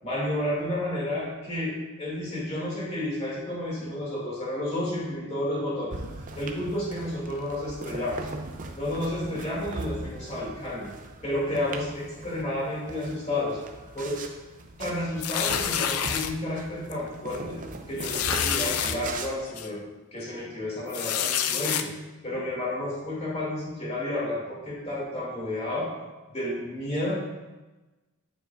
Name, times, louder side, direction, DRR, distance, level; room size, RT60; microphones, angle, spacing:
voice 1, 0.0-6.0 6.4-8.3 8.7-10.9 11.2-13.6 13.9-14.2 14.8-17.6 17.9-19.8 20.1-21.9 22.2-25.9 26.3-27.2, left 1 dB, 30° left, -6 dB, 2.6 m, -31 dB
sound 1, 5.9-19.3, right 2 dB, 35° right, 0.6 m, -40 dB
sound 2, 15.2-16.3 16.9-17.1 17.3-17.4 18.0-19.0 19.6-19.7 20.9-21.8, left 9 dB, 80° left, 0.5 m, -27 dB
8.7 x 7.2 x 2.6 m, 1.1 s
head